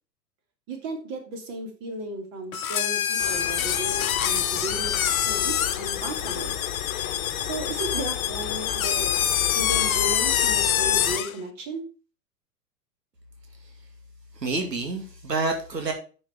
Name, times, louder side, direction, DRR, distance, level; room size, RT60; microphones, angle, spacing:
voice 1, 0.7-6.6 7.4-9.1 9.5-11.8, right 2 dB, 35° right, 4 dB, 3.2 m, -35 dB
sound 1, 2.5-11.3, left 10 dB, 55° left, 1.1 m, -26 dB
sound 2, 3.2-11.2, left 12 dB, 40° left, 1.4 m, -34 dB
voice 2, 14.4-15.9, right 3 dB, 75° right, 4 dB, 2.5 m, -28 dB
9.4 x 6.8 x 4.9 m, 0.36 s
figure-of-eight pair, 100°, 50 cm